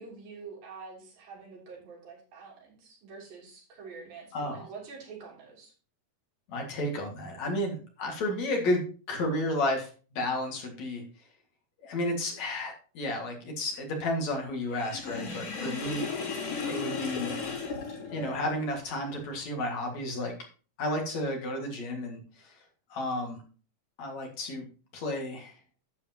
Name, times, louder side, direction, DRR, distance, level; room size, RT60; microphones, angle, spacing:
voice 1, 0.0-5.7, right 4 dB, 90° right, -3 dB, 4.8 m, -46 dB
voice 2, 4.3-4.7 6.5-8.8 9.1-11.0 11.8-17.4 18.1-20.3 20.8-22.5 22.9-23.4 24.0-24.6 24.9-25.5, left 1 dB, 55° left, 2 dB, 3.0 m, -32 dB
Sink (filling or washing), 14.7-18.7, left 5 dB, 85° left, 5.8 m, -35 dB
11.5 x 8.2 x 2.9 m, 0.37 s
omnidirectional pair, 3.9 m